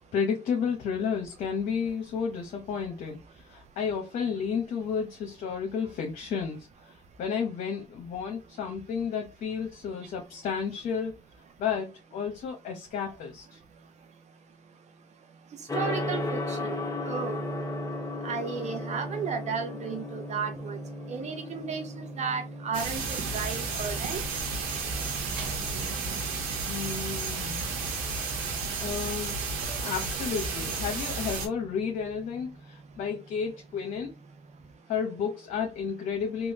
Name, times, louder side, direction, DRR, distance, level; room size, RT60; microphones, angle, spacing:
voice 1, 0.1-6.9 7.2-11.1 11.6-13.6 26.7-27.7 28.8-34.1 34.9-36.5, left 6 dB, 70° left, 0.8 m, -32 dB
Gong, 15.7-34.6, left 1 dB, 25° left, 0.9 m, -38 dB
voice 2, 15.7-17.4 18.2-20.8 21.1-24.2, right 6 dB, 55° right, 0.7 m, -34 dB
sound 1, 22.7-31.5, right 4 dB, 90° right, 0.9 m, -32 dB
3.1 x 2.3 x 2.9 m
supercardioid pair, 65°, 14 cm